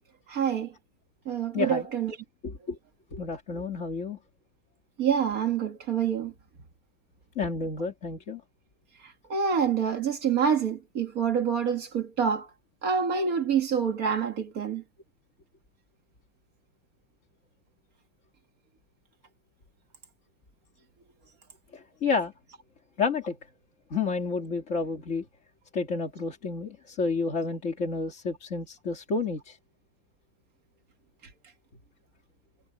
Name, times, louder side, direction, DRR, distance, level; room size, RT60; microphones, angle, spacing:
voice 1, 0.3-0.7 1.3-2.2 5.0-6.3 9.3-12.5 12.8-14.8, right 7 dB, 45° right, 2.0 m, -26 dB
voice 2, 1.5-1.9 2.4-2.8 3.1-4.2 7.4-8.4 21.7-22.3 23.0-23.4 23.9-25.2 25.7-29.6, left 4 dB, 35° left, 2.3 m, -30 dB
omnidirectional pair, 2.3 m